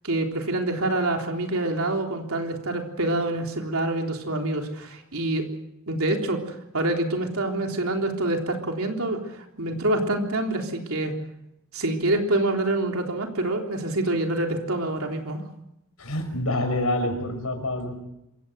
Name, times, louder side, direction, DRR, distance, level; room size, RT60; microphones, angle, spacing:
voice 1, 0.0-5.5 5.9-11.1 11.7-15.4, right 2 dB, 80° right, 3 dB, 3.7 m, -26 dB
voice 2, 16.0-18.0, left 1 dB, 85° left, 6 dB, 5.5 m, -27 dB
26.5 x 16.0 x 8.1 m, 0.83 s
head